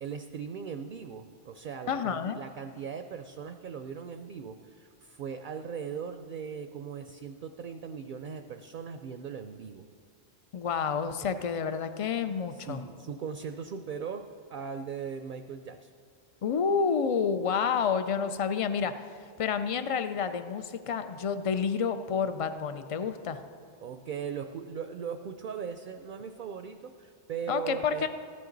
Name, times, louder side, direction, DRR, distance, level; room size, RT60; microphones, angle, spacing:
voice 1, 0.0-9.8 11.2-11.3 12.5-15.9 23.8-28.1, right 6 dB, 60° right, 7 dB, 0.6 m, -39 dB
voice 2, 1.9-2.4 10.5-12.8 16.4-19.0 19.4-23.4 27.5-28.1, left 6 dB, 60° left, 10 dB, 0.3 m, -29 dB
14.5 x 11.0 x 3.9 m, 2.2 s
omnidirectional pair, 1.2 m